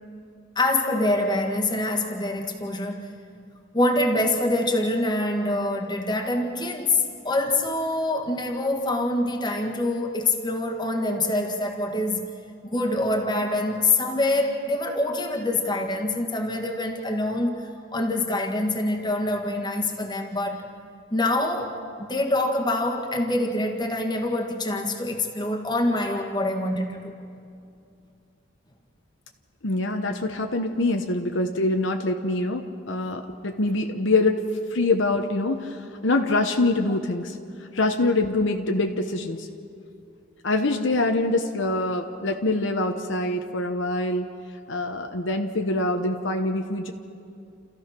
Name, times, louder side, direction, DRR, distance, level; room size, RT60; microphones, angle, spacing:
voice 1, 0.5-3.1 3.7-12.3 12.6-20.7 21.1-27.1, left 2 dB, 20° left, 1 dB, 1.7 m, -25 dB
voice 2, 29.6-34.4 34.7-37.4 37.7-39.5 40.4-44.3 44.7-46.9, left 2 dB, 65° left, 4 dB, 1.0 m, -24 dB
30.0 x 14.5 x 6.0 m, 2.5 s
head